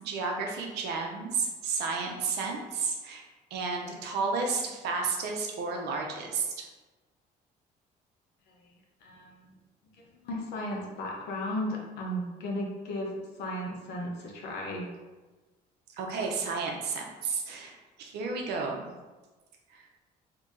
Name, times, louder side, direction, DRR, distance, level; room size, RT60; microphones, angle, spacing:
voice 1, 0.0-3.2 3.5-6.7 16.0-18.9 19.7-19.8, right 4 dB, 75° right, 1 dB, 0.7 m, -32 dB
voice 2, 9.0-9.3 9.9-13.1 13.4-14.9, left 1 dB, 80° left, -1 dB, 0.9 m, -35 dB
2.9 x 2.7 x 3.7 m, 1.2 s
cardioid pair, 110°, 17 cm